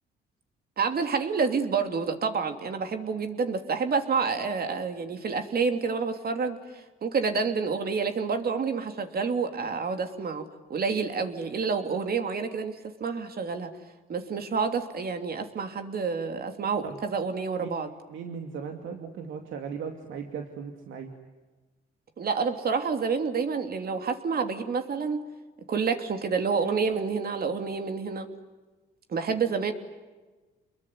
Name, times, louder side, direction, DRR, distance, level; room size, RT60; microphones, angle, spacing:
voice 1, 0.8-6.6 7.0-10.4 10.7-13.7 14.1-17.9 22.2-25.2 25.7-28.3 29.1-29.7, right 5 dB, 50° right, 6 dB, 3.1 m, -28 dB
voice 2, 18.1-21.1, right 6 dB, 80° right, 4 dB, 2.5 m, -37 dB
28.0 x 22.0 x 9.6 m, 1.2 s
cardioid pair, 90°, 20 cm